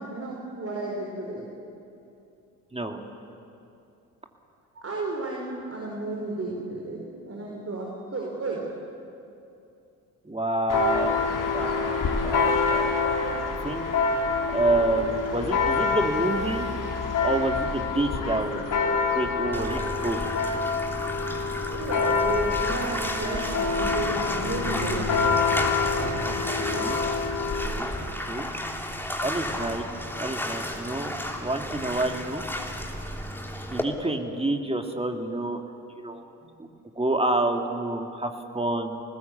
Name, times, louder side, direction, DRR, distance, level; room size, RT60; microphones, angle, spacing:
voice 1, 0.0-1.5 4.7-8.7 21.7-25.1 36.4-36.5, right 2 dB, 30° right, -1 dB, 4.8 m, -33 dB
voice 2, 10.2-13.3 13.6-13.8 14.5-16.7 17.2-18.6 19.1-20.2 26.2-27.0 27.6-27.9 28.3-28.5 29.2-29.9 30.2-32.4 33.7-35.6 36.0-36.2 37.0-39.0, right 2 dB, 15° right, 4 dB, 2.7 m, -28 dB
Church bell, 10.7-27.7, left 4 dB, 45° left, 3.4 m, -27 dB
sound 1, 18.5-27.3, left 4 dB, 70° left, 4.2 m, -41 dB
Bathtub (filling or washing), 19.5-33.8, equal, 5° left, 3.2 m, -33 dB
27.5 x 19.5 x 8.4 m, 2.7 s
figure-of-eight pair, 45°, 43 cm